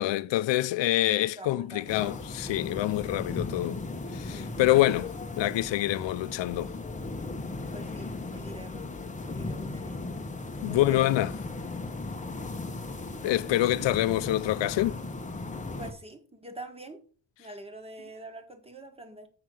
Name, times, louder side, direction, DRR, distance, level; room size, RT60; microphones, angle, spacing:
voice 1, 0.0-3.8 4.1-6.7 10.6-11.3 13.2-15.0, left 15 dB, 80° left, 0.6 m, -26 dB
voice 2, 1.4-2.2 4.3-4.6 7.7-9.0 9.2-10.2 10.7-11.3 13.8-13.9 15.8-17.0 17.4-19.3, right 2 dB, 15° right, 1.5 m, -45 dB
sound 1, 1.9-15.9, left 2 dB, 15° left, 0.9 m, -37 dB
7.9 x 5.6 x 6.2 m
wide cardioid pair, 150°, 44 cm